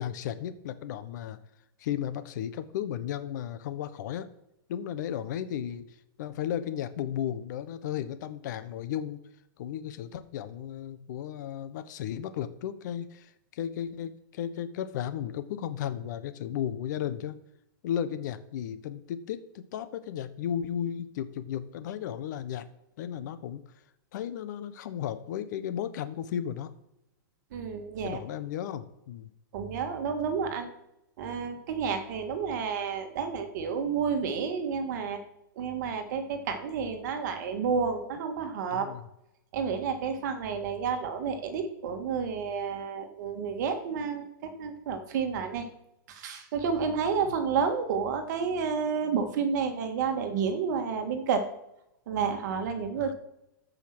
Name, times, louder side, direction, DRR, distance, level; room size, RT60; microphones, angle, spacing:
voice 1, 0.0-1.4 1.8-4.3 4.7-5.9 6.2-9.2 9.6-17.4 17.8-22.7 23.0-23.6 24.1-26.7 28.0-29.3 38.7-39.0 53.0-53.1, left 10 dB, 55° left, 12 dB, 1.2 m, -34 dB
voice 2, 27.5-28.2 29.5-30.7 31.2-35.2 35.6-38.9 39.5-45.7 46.1-51.5 52.1-53.1, right 6 dB, 55° right, 6 dB, 2.0 m, -30 dB
14.0 x 5.6 x 6.2 m, 0.84 s
hypercardioid pair, 150°, 12 cm